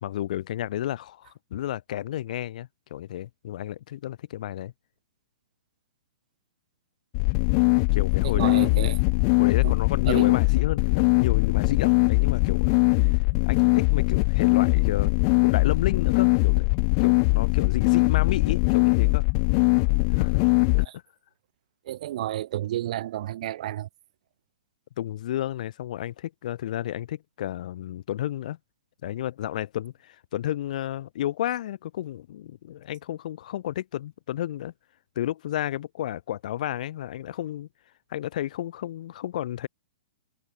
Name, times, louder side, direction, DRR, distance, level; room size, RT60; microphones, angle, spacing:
voice 1, 0.0-4.7 7.9-8.9 9.4-12.7 13.0-13.1 13.4-15.1 15.4-16.7 17.0-19.2 20.1-20.4 20.7-20.9 25.0-28.6 29.0-34.7 35.2-37.7 38.1-39.7, left 12 dB, 55° left, 2.8 m, -32 dB
sound 1, 7.1-20.8, left 40 dB or more, 40° left, 0.4 m, -21 dB
voice 2, 8.2-9.0 9.6-9.7 10.1-10.3 21.8-23.9, right 13 dB, 55° right, 1.7 m, -31 dB
figure-of-eight pair, 115°, 5 cm